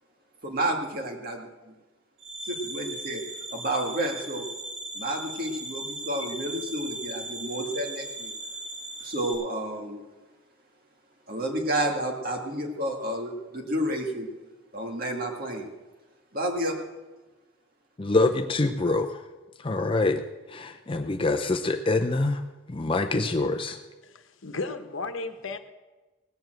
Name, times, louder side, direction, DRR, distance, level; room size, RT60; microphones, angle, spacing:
voice 1, 0.4-1.7 2.5-3.2 3.5-4.5 4.9-8.3 9.0-10.0 11.3-14.3 14.7-15.7 16.3-16.8, right 1 dB, 45° right, 1 dB, 2.0 m, -30 dB
sound 1, 2.2-9.3, right 2 dB, 65° right, 5.5 m, -38 dB
voice 2, 18.0-19.2 19.6-20.2 20.5-22.4 22.7-23.8, left 2 dB, 25° left, 6 dB, 0.5 m, -25 dB
voice 3, 24.0-25.6, left 3 dB, 75° left, 8 dB, 1.0 m, -34 dB
18.5 x 7.1 x 7.8 m, 1.2 s
head